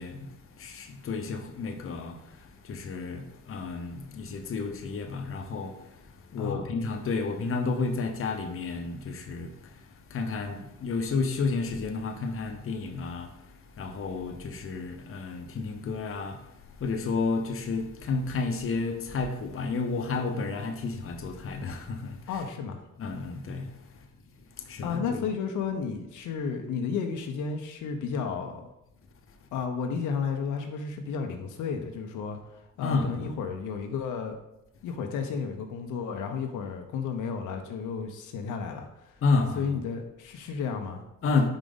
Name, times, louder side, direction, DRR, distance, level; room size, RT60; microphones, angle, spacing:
voice 1, 0.0-22.2 23.0-24.0 24.6-25.3 32.8-33.4 39.2-39.7 41.2-41.5, left 4 dB, 45° left, 0.8 m, -31 dB
voice 2, 22.3-22.8 24.8-28.7 29.5-34.4 34.8-39.2 39.6-41.0, left 6 dB, 80° left, 0.8 m, -32 dB
5.1 x 4.8 x 3.9 m
cardioid pair, 90°, 30 cm